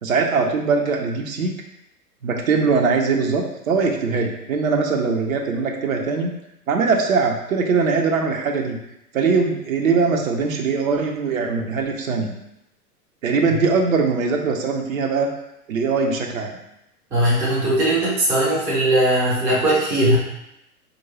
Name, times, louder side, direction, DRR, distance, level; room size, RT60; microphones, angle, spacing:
voice 1, 0.0-1.5 2.2-6.3 6.7-8.8 9.1-12.3 13.2-15.3 15.7-16.6, right 4 dB, 60° right, 2 dB, 0.8 m, -21 dB
voice 2, 17.1-20.2, right 1 dB, 5° right, -8 dB, 0.4 m, -19 dB
4.4 x 2.7 x 2.9 m, 0.85 s
figure-of-eight pair, 105°, 48 cm